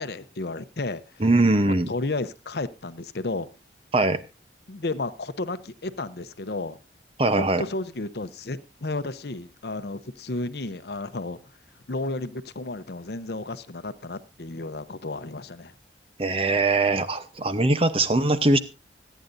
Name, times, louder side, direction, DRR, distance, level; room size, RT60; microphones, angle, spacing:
voice 1, 0.0-1.0 1.9-3.5 4.7-6.8 7.4-11.4 11.9-15.7, left 2 dB, 60° left, 12 dB, 0.8 m, -32 dB
voice 2, 1.2-1.9 3.9-4.2 7.2-7.6 16.2-18.6, right 2 dB, 30° right, 11 dB, 0.8 m, -21 dB
25.5 x 9.2 x 2.6 m, 0.27 s
head